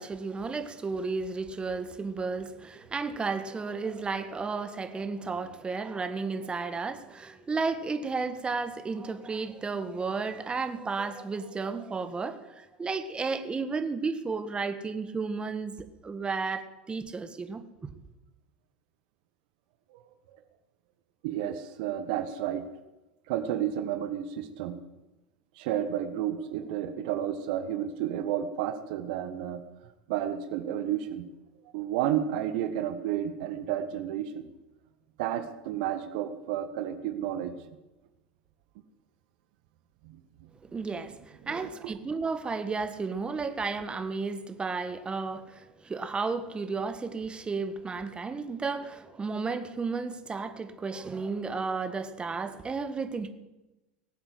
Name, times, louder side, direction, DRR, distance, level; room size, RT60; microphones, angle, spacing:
voice 1, 0.0-17.6 40.7-53.3, right 4 dB, 20° right, 10 dB, 1.6 m, -33 dB
voice 2, 21.2-22.7 23.3-24.8 25.6-29.6 30.1-31.3 31.7-34.5 35.2-37.5 40.0-40.2 41.4-41.9, right 10 dB, 65° right, 9 dB, 1.4 m, -31 dB
19.5 x 8.0 x 7.9 m, 1.0 s
hypercardioid pair, 90°, 5 cm